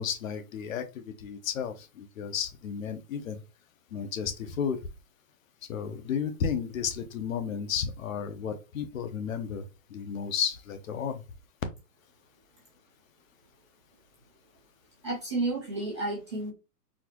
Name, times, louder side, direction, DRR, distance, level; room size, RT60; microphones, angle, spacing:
voice 1, 0.0-3.4 3.9-4.8 5.7-9.6 9.9-11.2, left 7 dB, 55° left, 0.7 m, -33 dB
voice 2, 15.0-16.5, right 2 dB, 20° right, 0.5 m, -31 dB
4.2 x 2.0 x 2.8 m
hypercardioid pair, 150°, 48 cm